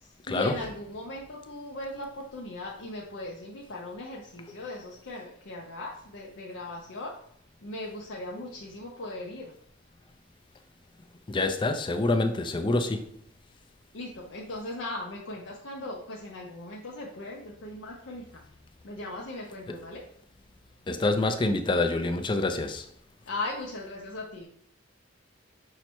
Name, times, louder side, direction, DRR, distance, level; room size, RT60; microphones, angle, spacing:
voice 1, 0.0-7.2 7.6-9.5 13.9-18.3 18.8-20.0 23.3-24.5, left 2 dB, 65° left, 0.6 m, -38 dB
voice 2, 11.3-13.1 20.9-22.9, left 2 dB, 25° left, 0.4 m, -26 dB
5.6 x 2.1 x 4.4 m
head